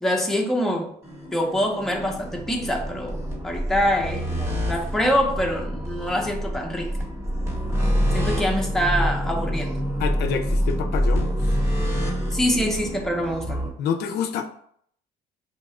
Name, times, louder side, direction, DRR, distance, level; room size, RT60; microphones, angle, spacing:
voice 1, 0.0-0.9 1.3-6.9 8.1-9.8 12.3-13.6, equal, ahead, 1 dB, 0.6 m, -25 dB
sound 1, 1.0-13.7, equal, 15° right, 0.9 m, -26 dB
voice 2, 10.0-11.6 13.8-14.4, left 7 dB, 75° left, 7 dB, 0.4 m, -28 dB
2.8 x 2.3 x 4.1 m, 0.66 s
cardioid pair, 110°, 17 cm